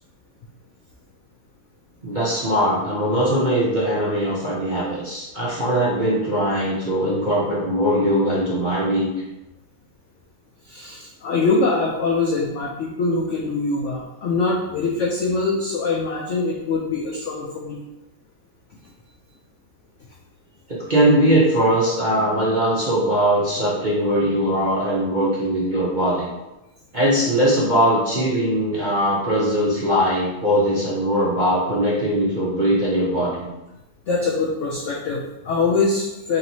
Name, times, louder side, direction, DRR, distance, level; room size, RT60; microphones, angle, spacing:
voice 1, 2.0-9.1 20.7-26.3 26.9-33.5, equal, 45° right, -8 dB, 0.6 m, -20 dB
voice 2, 10.6-17.8 34.1-36.4, left 3 dB, 75° left, -2 dB, 0.6 m, -23 dB
3.1 x 3.0 x 4.0 m, 0.96 s
omnidirectional pair, 1.8 m